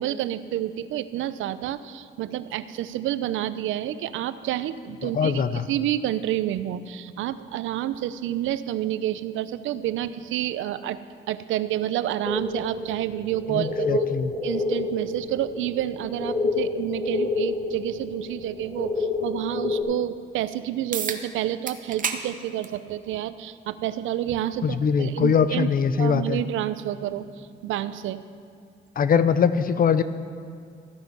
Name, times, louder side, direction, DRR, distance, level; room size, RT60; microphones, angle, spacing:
voice 1, 0.0-11.0 11.3-14.1 14.4-25.7 26.0-28.2, right 12 dB, 85° right, 14 dB, 0.6 m, -29 dB
voice 2, 5.0-5.7 13.5-14.3 24.6-26.4 29.0-30.0, left 6 dB, 45° left, 13 dB, 0.7 m, -22 dB
sound 1, 12.2-19.8, left 3 dB, 20° left, 2.6 m, -29 dB
sound 2, 20.9-21.2 21.7-22.2 22.6-22.8 23.9-24.0 28.9-29.0, right 6 dB, 40° right, 1.0 m, -29 dB
14.0 x 9.0 x 5.4 m, 2.4 s
cardioid pair, 90°, 20 cm